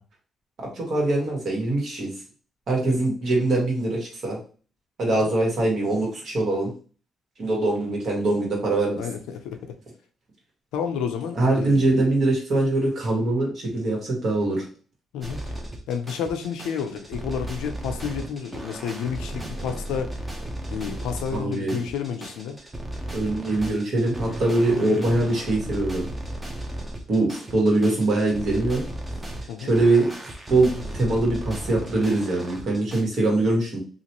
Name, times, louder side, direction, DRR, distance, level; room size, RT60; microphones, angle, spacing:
voice 1, 0.6-2.1 2.7-4.4 5.0-6.7 7.4-9.0 11.3-14.6 21.3-21.8 23.1-26.0 27.1-28.8 29.6-33.8, right 2 dB, 60° right, 1.6 m, -23 dB
voice 2, 9.0-9.8 10.7-12.1 15.1-15.4 15.9-20.2 20.7-22.6 24.7-25.0 29.5-29.7, left 7 dB, 85° left, 0.4 m, -31 dB
sound 1, 15.2-33.0, right 1 dB, 20° right, 0.9 m, -35 dB
2.9 x 2.4 x 2.9 m
supercardioid pair, 65°, 0 cm